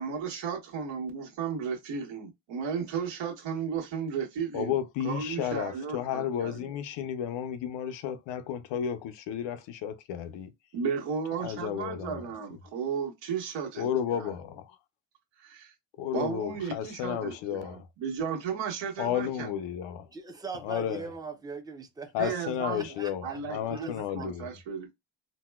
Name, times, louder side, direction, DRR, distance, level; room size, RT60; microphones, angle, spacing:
voice 1, 0.0-4.8 5.0-6.7 10.7-14.3 15.4-15.7 16.1-19.5 22.2-22.9 23.2-24.9, right 6 dB, 85° right, 1.3 m, -34 dB
voice 2, 4.5-10.5 11.4-12.3 13.8-14.7 16.0-17.9 19.0-20.1 20.6-21.0 22.1-24.5, left 9 dB, 85° left, 0.7 m, -32 dB
voice 3, 20.1-23.9, right 4 dB, 10° right, 0.5 m, -41 dB
3.9 x 2.1 x 2.3 m
cardioid pair, 140°, 43 cm